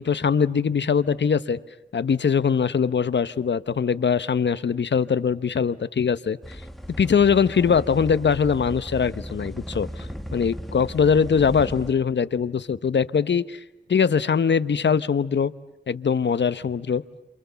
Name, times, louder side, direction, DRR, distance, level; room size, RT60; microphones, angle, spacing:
voice 1, 0.0-1.6 1.9-6.6 7.0-13.6 13.9-15.5 15.9-17.0, left 6 dB, 75° left, 15 dB, 1.0 m, -22 dB
sound 1, 6.4-11.9, equal, ahead, 2.1 m, -36 dB
29.0 x 27.0 x 7.0 m, 0.91 s
wide cardioid pair, 85°, 18 cm